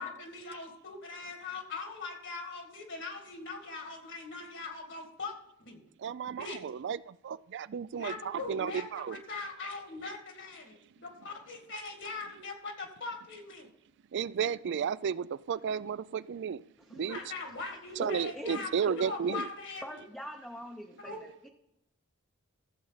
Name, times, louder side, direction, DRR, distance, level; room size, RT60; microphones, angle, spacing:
voice 1, 0.0-5.4 5.7-5.8 6.4-6.6 7.9-13.7 16.9-20.0 21.0-21.2, left 3 dB, 55° left, 4 dB, 2.1 m, -41 dB
voice 2, 6.0-9.2 14.1-16.6 17.0-17.2 18.0-19.5, right 7 dB, 55° right, 19 dB, 0.4 m, -33 dB
voice 3, 18.0-19.0 19.3-19.4 19.8-21.5, equal, 5° left, 1 dB, 0.7 m, -43 dB
14.0 x 7.7 x 4.0 m, 0.82 s
head